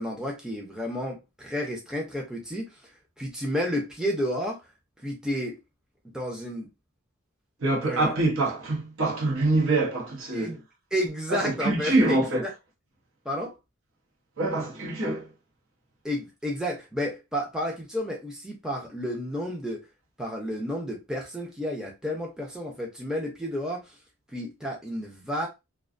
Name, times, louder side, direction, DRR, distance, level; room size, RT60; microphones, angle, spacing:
voice 1, 0.0-2.8 3.2-4.6 5.0-5.6 6.0-6.7 7.8-8.1 10.3-10.6 10.9-12.3 13.2-13.5 16.0-19.8 20.2-24.0 24.3-25.5, equal, 5° right, 0.5 m, -31 dB
voice 2, 7.6-10.6 11.3-12.4 14.4-15.3, right 2 dB, 65° right, 0.8 m, -25 dB
2.4 x 2.3 x 2.5 m
head